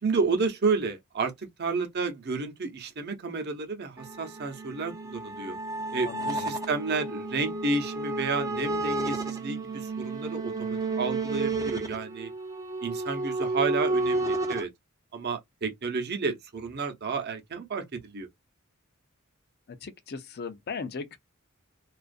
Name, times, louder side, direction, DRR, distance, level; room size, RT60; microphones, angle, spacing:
voice 1, 0.0-1.3 1.6-5.6 5.9-12.3 12.8-14.7 15.1-18.3, right 4 dB, 50° right, 0.7 m, -31 dB
sound 1, 4.0-14.6, right 2 dB, 15° right, 0.5 m, -31 dB
voice 2, 6.0-6.5 19.7-21.2, left 5 dB, 50° left, 0.5 m, -37 dB
2.4 x 2.4 x 2.4 m
head